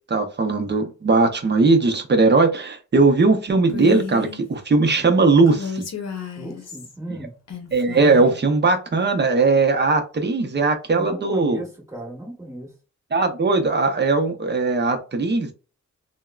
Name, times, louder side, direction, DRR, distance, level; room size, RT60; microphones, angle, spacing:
voice 1, 0.1-5.9 7.7-11.6 13.1-15.5, right 3 dB, 35° right, 0.6 m, -19 dB
Female speech woman speaking, 3.7-4.4 5.5-6.9 7.5-8.4, left 5 dB, 60° left, 0.7 m, -32 dB
voice 2, 6.3-7.3 10.9-12.7, right 1 dB, 10° right, 1.2 m, -35 dB
3.5 x 2.0 x 2.2 m
wide cardioid pair, 155°, 30 cm